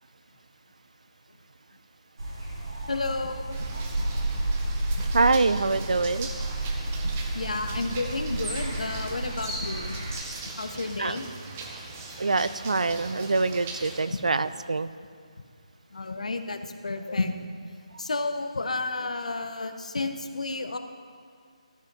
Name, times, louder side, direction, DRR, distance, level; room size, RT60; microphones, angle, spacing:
sound 1, 2.2-10.1, right 2 dB, 45° right, 2.3 m, -31 dB
voice 1, 2.9-3.6 4.0-4.1 4.4-4.5 5.0-5.1 7.3-10.0 10.6-11.2 15.9-17.3 18.0-20.8, left 3 dB, 70° left, 7 dB, 0.8 m, -31 dB
sound 2, 3.5-14.0, right 4 dB, 10° right, 0.5 m, -41 dB
voice 2, 5.1-6.3 11.0-11.2 12.2-14.9, right 3 dB, 75° right, 14 dB, 0.4 m, -25 dB
sound 3, 7.0-14.6, right 1 dB, 30° right, 1.9 m, -44 dB
14.0 x 5.2 x 5.3 m, 2.1 s
hypercardioid pair, 175°, 4 cm